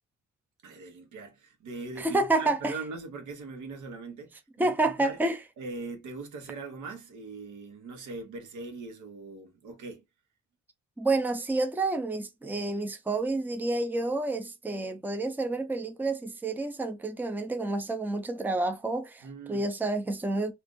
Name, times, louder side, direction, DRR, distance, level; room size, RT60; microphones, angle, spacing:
voice 1, 0.6-5.2 5.6-10.0 19.2-19.7, right 3 dB, 80° right, 1.1 m, -41 dB
voice 2, 2.0-2.7 4.6-5.4 11.0-20.5, right 2 dB, 5° right, 0.5 m, -29 dB
2.5 x 2.4 x 3.7 m
cardioid pair, 90°, 30 cm